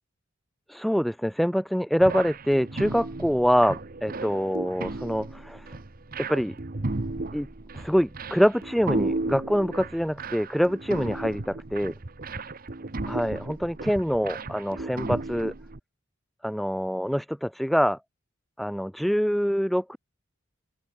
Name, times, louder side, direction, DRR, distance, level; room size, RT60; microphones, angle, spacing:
voice 1, 0.7-5.8 6.2-6.5 7.3-7.5 7.7-11.9 13.1-15.5 16.4-18.0 18.6-20.0, equal, ahead, 1.3 m, -25 dB
sound 1, 2.0-15.8, right 2 dB, 45° right, 1.0 m, -34 dB
open air
head